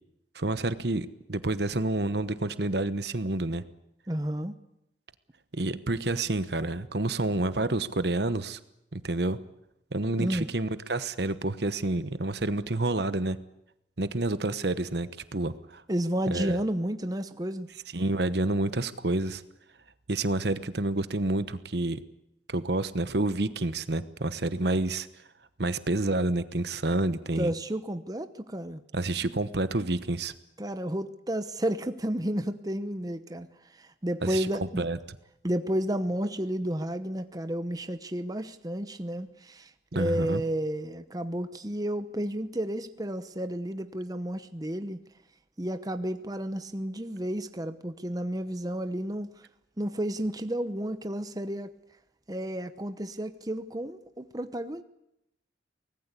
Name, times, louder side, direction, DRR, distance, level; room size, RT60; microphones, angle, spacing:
voice 1, 0.3-3.6 5.5-8.6 8.9-9.4 9.9-13.4 14.0-15.8 16.3-16.6 17.9-19.4 20.1-22.0 22.5-25.1 25.6-27.5 28.9-30.3 34.2-35.0 39.9-40.4, right 2 dB, 65° right, 12 dB, 1.1 m, -29 dB
voice 2, 4.1-4.5 10.2-10.5 15.9-17.7 27.3-28.8 30.6-34.8 35.4-45.0 45.6-49.3 49.8-51.7 52.3-54.8, right 1 dB, 20° right, 10 dB, 0.9 m, -31 dB
24.5 x 19.0 x 8.4 m, 0.83 s
head